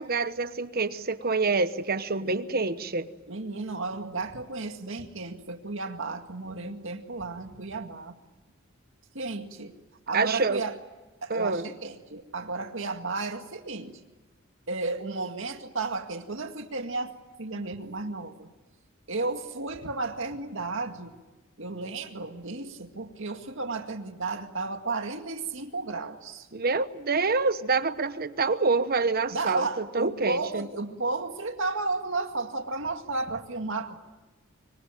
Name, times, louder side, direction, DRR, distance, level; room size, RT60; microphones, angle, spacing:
voice 1, 0.0-3.1 10.1-10.6 11.3-11.6 26.5-30.7, right 4 dB, 45° right, 12 dB, 1.1 m, -26 dB
voice 2, 3.3-8.2 9.1-9.7 10.1-10.8 11.2-14.0 14.7-18.5 19.1-21.1 21.6-26.5 29.3-34.0, right 3 dB, 65° right, 5 dB, 2.1 m, -33 dB
25.0 x 24.5 x 9.2 m, 1.2 s
head